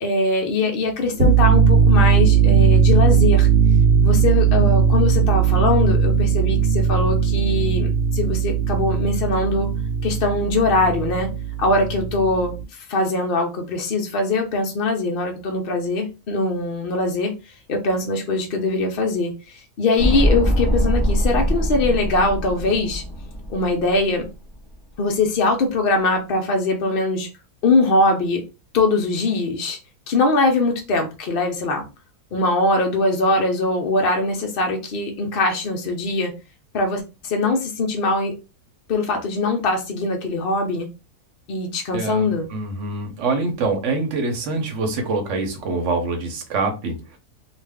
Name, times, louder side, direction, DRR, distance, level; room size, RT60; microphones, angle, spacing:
voice 1, 0.0-3.5 4.0-9.7 10.0-11.3 11.6-17.3 17.7-23.0 23.5-24.3 25.0-27.3 27.6-28.4 28.7-29.8 30.1-31.8 32.3-36.3 36.7-38.3 38.9-40.9 41.5-42.5, left 2 dB, 65° left, 2 dB, 0.5 m, -22 dB
sound 1, 1.1-12.6, right 6 dB, 85° right, 1.3 m, -18 dB
sound 2, 20.0-24.3 24.5-24.6, equal, 10° left, 1.0 m, -22 dB
voice 2, 41.9-47.0, right 3 dB, 55° right, 4 dB, 0.9 m, -25 dB
2.5 x 2.4 x 3.4 m, 0.29 s
omnidirectional pair, 1.7 m